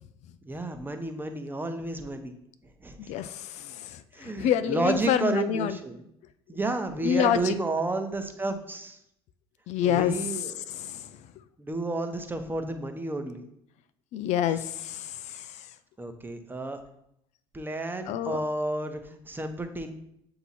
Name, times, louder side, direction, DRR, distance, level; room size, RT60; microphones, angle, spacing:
voice 1, 0.4-2.3 2.8-3.1 4.1-6.0 6.5-9.0 9.8-10.7 11.6-13.4 16.0-16.8 17.5-19.9, right 2 dB, 15° right, 6 dB, 1.0 m, -31 dB
voice 2, 3.1-5.8 7.0-7.5 9.7-11.3 14.1-15.7 18.1-18.4, left 9 dB, 55° left, 13 dB, 0.4 m, -28 dB
8.0 x 2.9 x 4.1 m, 0.76 s
hypercardioid pair, 60°, 14 cm